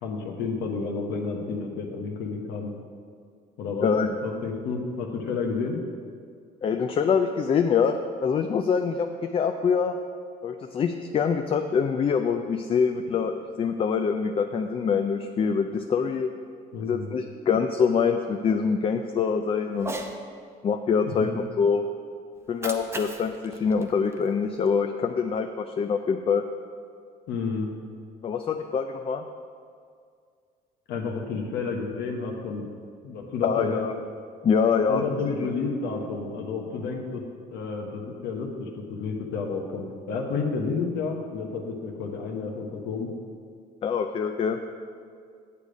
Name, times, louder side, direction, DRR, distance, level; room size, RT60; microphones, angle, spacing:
voice 1, 0.0-2.7 3.6-3.8 4.2-5.8 16.7-17.1 21.1-21.4 27.3-27.7 30.9-32.6 33.0-33.9 34.9-37.2 37.5-43.1, left 4 dB, 85° left, 1 dB, 1.1 m, -31 dB
voice 2, 3.8-4.2 6.6-10.0 10.4-16.3 16.9-20.0 20.6-21.9 22.5-26.4 28.2-29.2 33.4-33.9 34.4-35.0 43.8-44.6, left 6 dB, 35° left, 6 dB, 0.4 m, -25 dB
Cat, 19.7-20.2 22.4-24.7, right 2 dB, 15° right, 0.7 m, -38 dB
8.4 x 6.8 x 5.0 m, 2.2 s
cardioid pair, 110°, 17 cm